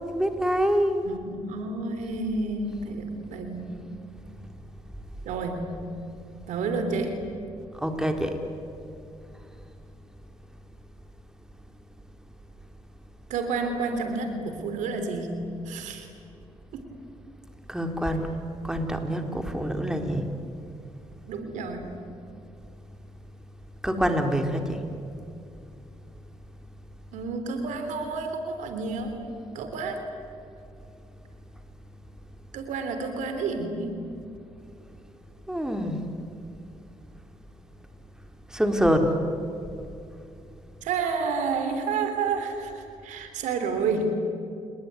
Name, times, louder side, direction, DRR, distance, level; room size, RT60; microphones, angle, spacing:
voice 1, 0.1-1.0 7.7-8.4 17.7-18.3 18.6-20.3 23.8-24.8 35.5-36.0 38.5-39.1, equal, 5° right, 4 dB, 3.9 m, -25 dB
voice 2, 1.0-3.8 5.3-5.7 6.5-7.2 13.3-15.4 15.7-16.1 16.7-16.9 21.3-21.9 27.1-29.3 29.6-30.0 32.5-34.0 40.8-44.1, right 4 dB, 85° right, 7 dB, 3.5 m, -30 dB
29.5 x 20.5 x 9.5 m, 2.6 s
supercardioid pair, 65°, 12 cm